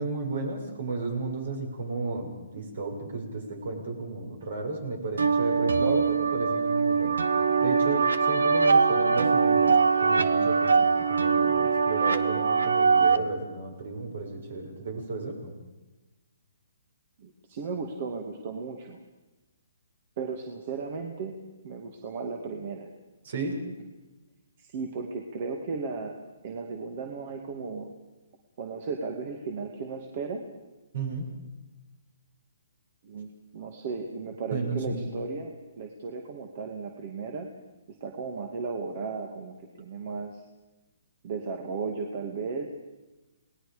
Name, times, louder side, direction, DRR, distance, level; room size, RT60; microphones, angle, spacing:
voice 1, 0.0-7.2 7.6-15.5 23.2-23.5 30.9-31.3 34.5-35.1, right 3 dB, 65° right, 3 dB, 7.0 m, -33 dB
sound 1, 5.2-13.2, right 5 dB, 90° right, 1.4 m, -22 dB
voice 2, 17.2-19.0 20.2-21.4 21.6-22.9 24.6-26.2 26.4-27.9 28.6-30.4 33.0-37.5 38.0-40.4 41.2-42.7, right 4 dB, 40° right, 3 dB, 2.3 m, -35 dB
28.5 x 19.5 x 5.2 m, 1.1 s
hypercardioid pair, 155°, 0 cm